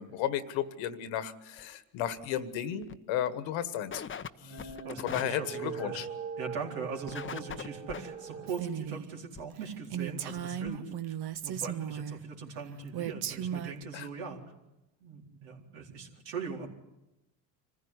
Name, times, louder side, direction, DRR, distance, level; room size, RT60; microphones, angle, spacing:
voice 1, 0.0-4.0 4.4-6.1 13.9-14.1, left 10 dB, 70° left, 12 dB, 1.6 m, -34 dB
sound 1, 1.6-1.7 2.1-2.4 2.8-2.9 3.3-3.4 3.9-4.3 4.6-5.2 7.1-8.0 9.4-9.5 10.1-10.2 10.4-10.5 10.7-10.8, left 7 dB, 25° left, 0.8 m, -40 dB
sound 2, 4.2-8.6, right 6 dB, 30° right, 3.9 m, -42 dB
voice 2, 4.5-6.0 6.4-11.2 11.4-14.4 15.0-16.7, right 5 dB, 75° right, 1 dB, 4.2 m, -40 dB
Female speech woman speaking, 8.5-9.1 9.5-9.6 9.9-12.2 12.9-13.8, right 9 dB, 55° right, 1.3 m, -36 dB
25.5 x 15.0 x 9.8 m, 0.97 s
supercardioid pair, 80°, 48 cm